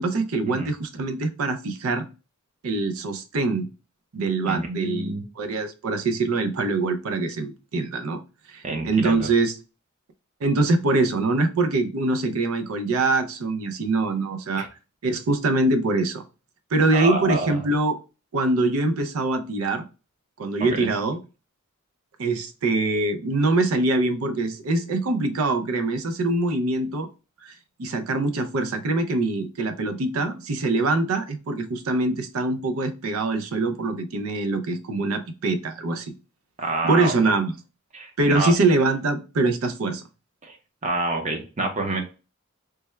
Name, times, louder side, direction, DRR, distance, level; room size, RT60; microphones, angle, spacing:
voice 1, 0.0-2.1 2.6-3.7 4.1-8.2 8.5-9.5 10.4-14.6 15.0-16.2 16.7-18.0 18.3-19.8 20.4-21.2 22.2-27.1 27.4-27.5 27.8-36.1 36.8-37.5 38.2-40.0, right 2 dB, 75° right, 8 dB, 0.5 m, -24 dB
voice 2, 4.5-5.2 8.6-9.3 14.6-14.7 16.9-17.5 20.6-20.9 36.6-37.2 37.9-38.5 40.4-40.6 40.8-42.0, right 2 dB, 35° right, 3 dB, 0.7 m, -28 dB
3.3 x 2.2 x 3.1 m, 0.31 s
head